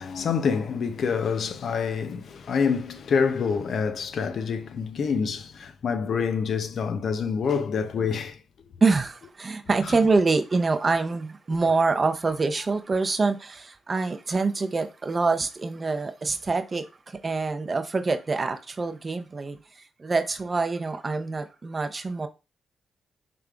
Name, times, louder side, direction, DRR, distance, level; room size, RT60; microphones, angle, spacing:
voice 1, 0.0-8.4, left 6 dB, 65° left, 0.5 m, -26 dB
voice 2, 8.8-22.3, right 3 dB, 35° right, 0.6 m, -25 dB
5.0 x 3.4 x 2.3 m
cardioid pair, 75°, 0 cm